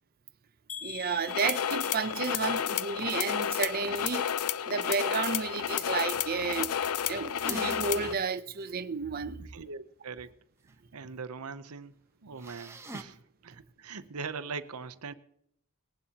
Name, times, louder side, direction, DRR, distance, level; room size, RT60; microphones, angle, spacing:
sound 1, 0.7-4.7 5.0-5.6 6.0-6.2 6.5-6.6, left 7 dB, 35° left, 0.5 m, -46 dB
voice 1, 0.8-6.8 7.1-9.5, right 5 dB, 45° right, 0.6 m, -32 dB
sound 2, 1.3-8.1, left 9 dB, 85° left, 0.5 m, -31 dB
sound 3, 7.4-8.2 8.6-8.7 12.4-13.0, right 2 dB, 10° right, 0.9 m, -40 dB
voice 2, 9.4-10.3 10.9-11.9 12.2-15.1, right 4 dB, 85° right, 0.8 m, -41 dB
20.0 x 11.0 x 2.9 m
head